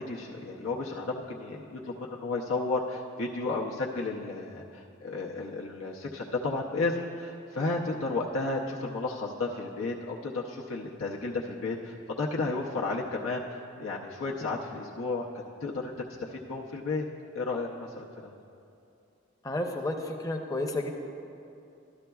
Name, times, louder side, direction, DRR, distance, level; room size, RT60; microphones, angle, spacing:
voice 1, 0.0-15.2 15.6-17.1 17.3-18.3, left 3 dB, 90° left, -3 dB, 0.6 m, -33 dB
voice 2, 19.4-20.9, left 1 dB, 15° left, 3 dB, 0.6 m, -31 dB
12.5 x 12.0 x 2.3 m, 2.7 s
head